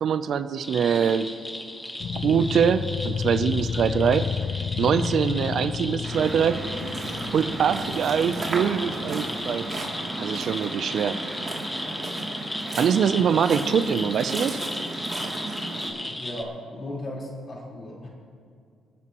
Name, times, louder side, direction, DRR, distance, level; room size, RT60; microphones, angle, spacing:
voice 1, 0.0-1.3 2.1-4.3 4.8-6.6 7.3-9.7 10.2-11.2 12.8-14.6, right 7 dB, 65° right, 12 dB, 0.5 m, -23 dB
sound 1, 0.6-16.4, left 1 dB, 15° left, 1.3 m, -36 dB
voice 2, 0.8-1.2 11.8-12.0 15.7-18.1, left 1 dB, 45° left, -4 dB, 4.2 m, -37 dB
sound 2, 2.0-10.6, left 6 dB, 60° left, 0.4 m, -32 dB
Waves surf, 6.0-15.9, right 2 dB, 40° right, 2.9 m, -34 dB
28.5 x 9.8 x 3.1 m, 2.3 s
cardioid pair, 90°, 0 cm